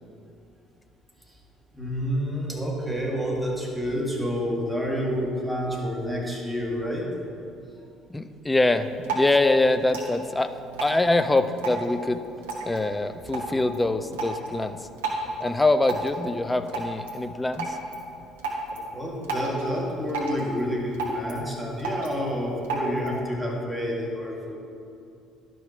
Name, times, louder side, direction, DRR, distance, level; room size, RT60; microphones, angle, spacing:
voice 1, 1.7-7.1 15.2-15.3 18.9-24.6, equal, 5° right, -3 dB, 2.1 m, -29 dB
voice 2, 8.1-10.5 10.8-12.2 12.6-14.9 15.4-17.8, left 2 dB, 15° left, 10 dB, 0.5 m, -24 dB
Drip, 8.7-23.2, right 2 dB, 75° right, 1.2 m, -34 dB
12.0 x 5.5 x 4.5 m, 2.6 s
figure-of-eight pair, 55°, 0 cm